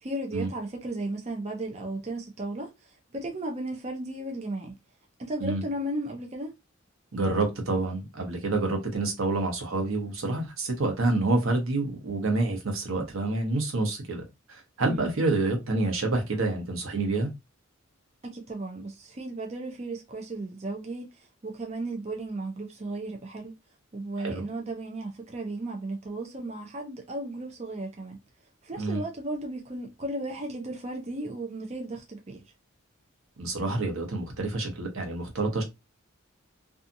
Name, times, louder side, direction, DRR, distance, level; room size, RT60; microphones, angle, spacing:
voice 1, 0.0-4.7 5.2-6.5 14.9-15.1 18.2-23.5 23.9-28.2 28.6-32.4, right 2 dB, 35° right, 0.5 m, -35 dB
voice 2, 7.1-14.2 14.5-17.3 24.2-24.4 28.8-29.0 33.4-35.6, right 2 dB, 85° right, 1.0 m, -28 dB
2.7 x 2.4 x 2.6 m
head